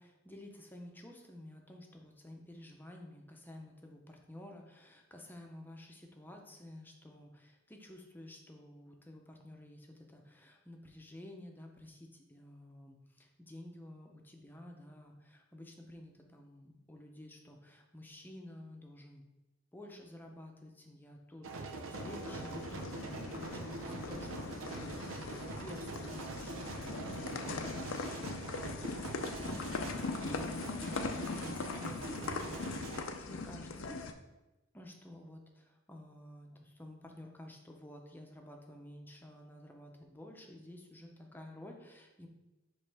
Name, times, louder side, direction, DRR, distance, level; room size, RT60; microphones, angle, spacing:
voice 1, 0.0-19.2 19.7-34.0 34.7-42.3, left 1 dB, 10° left, 2 dB, 0.7 m, -52 dB
sound 1, 21.4-33.0, right 3 dB, 85° right, 0.7 m, -43 dB
sound 2, 21.9-34.1, left 4 dB, 75° left, 0.5 m, -41 dB
9.6 x 3.2 x 3.4 m, 1.0 s
head